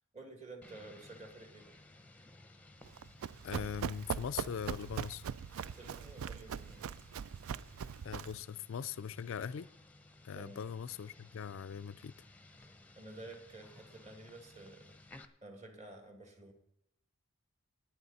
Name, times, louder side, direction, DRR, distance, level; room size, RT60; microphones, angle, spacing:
voice 1, 0.0-1.7 5.7-6.8 10.3-10.6 12.6-15.0 15.4-16.5, right 2 dB, 30° right, 2.2 m, -51 dB
sound 1, 0.6-15.2, left 2 dB, 5° left, 0.7 m, -58 dB
Run, 2.8-8.4, right 7 dB, 70° right, 0.3 m, -41 dB
voice 2, 3.4-5.2 8.0-9.7 10.2-12.1, left 7 dB, 60° left, 0.4 m, -41 dB
19.5 x 8.1 x 4.1 m
head